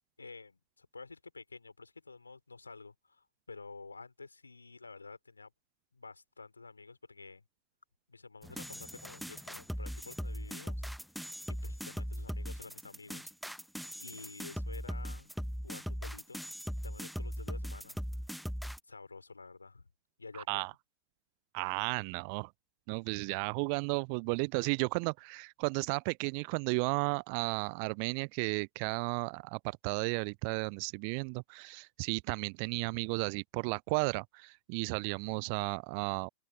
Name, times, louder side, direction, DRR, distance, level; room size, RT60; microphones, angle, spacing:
voice 1, 0.2-5.5 5.9-7.4 8.1-10.8 11.5-13.3 13.9-15.3 15.6-16.4 16.8-18.0 18.3-18.4 18.9-19.9 20.2-20.6, left 4 dB, 80° left, 3.8 m, -50 dB
sound 1, 8.4-18.8, equal, ahead, 1.0 m, -39 dB
voice 2, 21.5-22.5 22.9-36.3, right 40 dB or more, 45° right, 0.5 m, -34 dB
open air
figure-of-eight pair, 90°, 0 cm